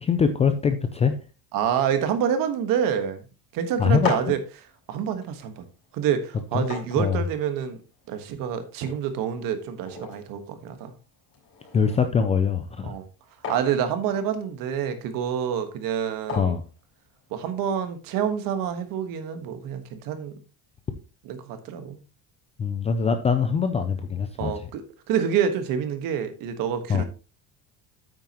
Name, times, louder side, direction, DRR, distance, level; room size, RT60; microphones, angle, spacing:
voice 1, 0.0-1.2 3.8-4.1 6.5-6.6 7.0-7.2 11.7-13.0 16.3-16.6 22.6-24.7 26.9-27.0, left 6 dB, 15° left, 0.3 m, -23 dB
voice 2, 1.5-3.2 3.5-4.4 4.9-5.6 5.9-7.8 8.1-10.9 12.8-13.1 13.5-16.5 17.3-20.4 21.2-22.0 24.4-24.8 25.1-27.0, right 8 dB, 55° right, 1.5 m, -27 dB
sound 1, 4.0-17.6, left 5 dB, 35° left, 3.5 m, -40 dB
9.1 x 8.9 x 2.9 m
cardioid pair, 175°, 40 cm